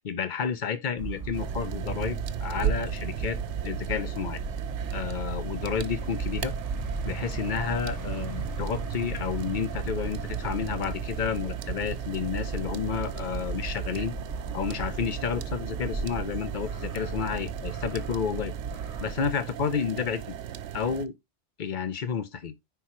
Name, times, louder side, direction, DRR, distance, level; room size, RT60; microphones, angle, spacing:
voice 1, 0.0-3.4 3.6-4.4 4.9-6.5 7.0-14.1 14.5-18.5 19.0-20.4 20.7-21.1 21.6-22.5, left 7 dB, 50° left, 0.9 m, -31 dB
sound 1, 1.0-19.1, right 4 dB, 35° right, 1.4 m, -35 dB
sound 2, 1.3-21.1, right 10 dB, 80° right, 0.9 m, -37 dB
9.9 x 4.0 x 3.0 m
omnidirectional pair, 1.2 m